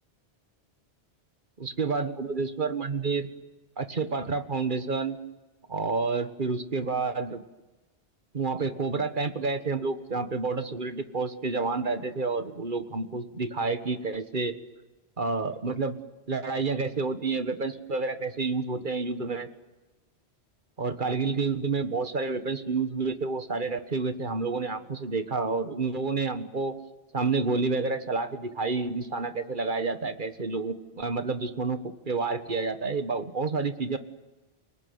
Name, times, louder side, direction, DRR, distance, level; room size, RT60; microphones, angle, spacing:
voice 1, 1.6-3.3 3.8-5.2 5.7-7.4 8.3-14.6 15.2-16.0 16.3-19.5 20.8-26.8 27.1-34.0, right 4 dB, 50° right, 10 dB, 1.7 m, -29 dB
29.5 x 20.0 x 9.5 m, 1.1 s
omnidirectional pair, 1.1 m